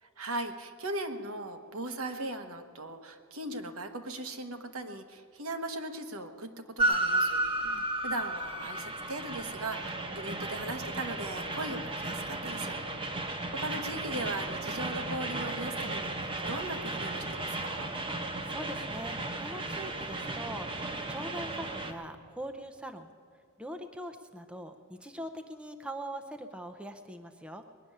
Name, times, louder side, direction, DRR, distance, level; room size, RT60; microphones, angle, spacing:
voice 1, 0.0-12.8 13.2-17.9, right 2 dB, 70° right, 6 dB, 1.2 m, -39 dB
Train, 6.8-21.9, right 2 dB, 25° right, 1.0 m, -34 dB
voice 2, 7.5-7.8 18.5-23.1 23.6-27.6, right 1 dB, 5° right, 6 dB, 0.6 m, -42 dB
20.5 x 6.9 x 9.8 m, 2.4 s
head